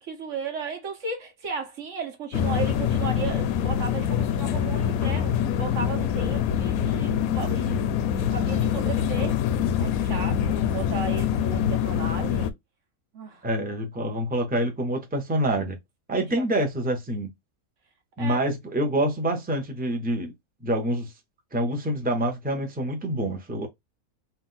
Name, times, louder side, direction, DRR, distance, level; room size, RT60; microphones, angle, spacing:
voice 1, 0.0-9.4 9.8-12.5 13.1-13.5 16.2-16.7 18.2-18.4, right 5 dB, 55° right, 1.5 m, -35 dB
sound 1, 2.3-12.5, left 9 dB, 75° left, 1.0 m, -25 dB
voice 2, 13.4-15.8 16.1-17.3 18.2-20.3 20.6-21.1 21.5-23.7, right 1 dB, 10° right, 0.7 m, -26 dB
4.0 x 2.7 x 3.9 m
omnidirectional pair, 1.6 m